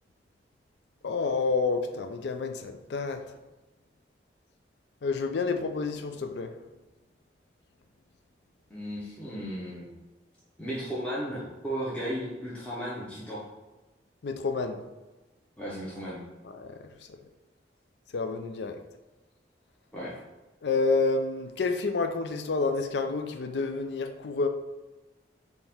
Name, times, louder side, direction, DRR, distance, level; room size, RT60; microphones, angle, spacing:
voice 1, 1.0-3.2 5.0-6.5 14.2-14.8 16.5-16.8 18.1-18.8 20.6-24.5, left 4 dB, 80° left, 7 dB, 0.4 m, -29 dB
voice 2, 8.7-9.9 10.6-13.4 15.6-16.2 19.9-20.1, equal, 5° left, -8 dB, 0.8 m, -35 dB
4.4 x 3.3 x 3.5 m, 1.1 s
head